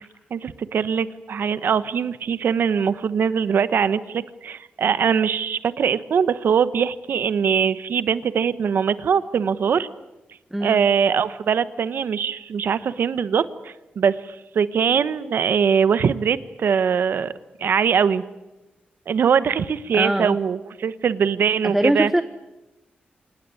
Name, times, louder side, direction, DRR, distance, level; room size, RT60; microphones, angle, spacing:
voice 1, 0.3-9.9 10.6-17.3 17.6-18.2 19.1-22.1, right 7 dB, 70° right, 14 dB, 1.1 m, -22 dB
voice 2, 10.5-10.8 19.9-20.4 21.6-22.2, right 1 dB, 5° right, 11 dB, 0.8 m, -22 dB
26.5 x 19.0 x 9.8 m, 1.0 s
wide cardioid pair, 115°, 4 cm